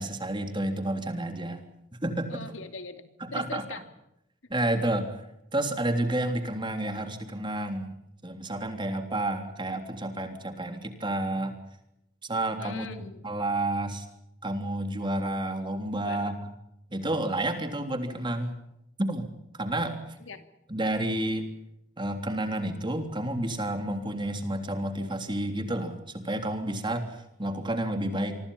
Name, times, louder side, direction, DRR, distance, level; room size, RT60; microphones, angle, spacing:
voice 1, 0.0-1.6 2.0-2.4 3.2-3.8 4.5-5.2 5.5-7.9 8.2-11.6 12.2-12.9 13.2-14.1 14.4-16.3 16.9-18.6 19.0-19.3 19.6-20.0 20.7-21.5 22.0-28.4, right 1 dB, 25° right, 6 dB, 3.3 m, -30 dB
voice 2, 2.3-3.8 12.6-13.3 16.0-16.4 20.3-20.4, left 3 dB, 90° left, 8 dB, 2.6 m, -40 dB
26.5 x 24.5 x 5.6 m, 0.82 s
head